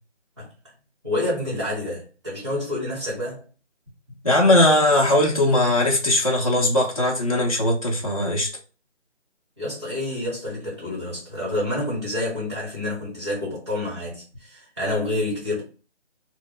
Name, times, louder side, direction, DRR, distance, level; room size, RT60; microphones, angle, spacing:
voice 1, 1.0-3.4 9.6-15.6, left 1 dB, 25° right, 1.2 m, -28 dB
voice 2, 4.2-8.5, left 1 dB, 30° left, 0.5 m, -19 dB
2.1 x 2.0 x 3.8 m
figure-of-eight pair, 165°, 35 cm